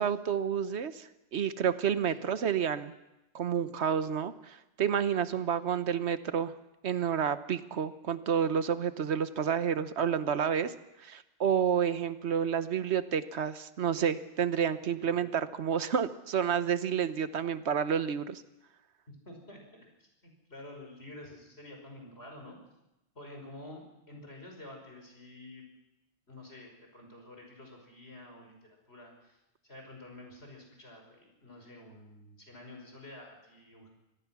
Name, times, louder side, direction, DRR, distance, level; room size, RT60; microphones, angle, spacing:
voice 1, 0.0-2.9 3.3-6.5 6.8-10.7 11.0-18.4, right 8 dB, 80° right, 12 dB, 1.2 m, -30 dB
voice 2, 19.1-22.6 23.1-25.7 26.3-29.4 29.6-33.9, left 1 dB, 70° left, 2 dB, 5.9 m, -49 dB
25.0 x 18.0 x 6.0 m, 0.94 s
omnidirectional pair, 1.1 m